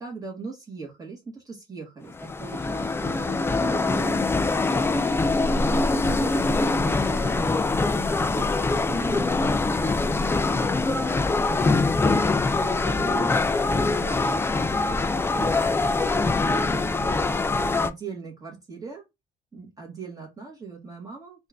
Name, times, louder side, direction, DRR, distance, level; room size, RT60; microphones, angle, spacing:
voice 1, 0.0-10.3 12.2-16.1 16.5-19.0 19.5-21.5, right 4 dB, 20° right, 1.7 m, -40 dB
sound 1, 2.1-17.9, left 3 dB, 15° left, 0.4 m, -23 dB
4.3 x 2.6 x 3.5 m
cardioid pair, 110°, 17 cm